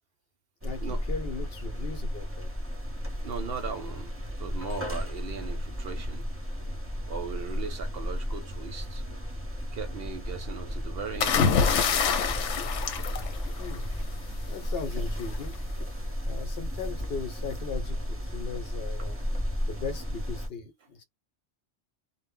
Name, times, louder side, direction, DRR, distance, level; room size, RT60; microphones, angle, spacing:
voice 1, 0.6-2.5 13.6-13.9 14.4-15.6 16.2-19.2 19.7-21.0, left 5 dB, 60° left, 0.9 m, -38 dB
sound 1, 0.6-20.5, equal, 15° right, 0.6 m, -34 dB
voice 2, 3.2-6.2 7.1-9.0 9.7-11.4 19.0-19.1, right 5 dB, 65° right, 0.7 m, -38 dB
sound 2, 11.2-14.0 15.2-15.5, left 6 dB, 85° left, 0.9 m, -26 dB
2.1 x 2.0 x 3.6 m
omnidirectional pair, 1.2 m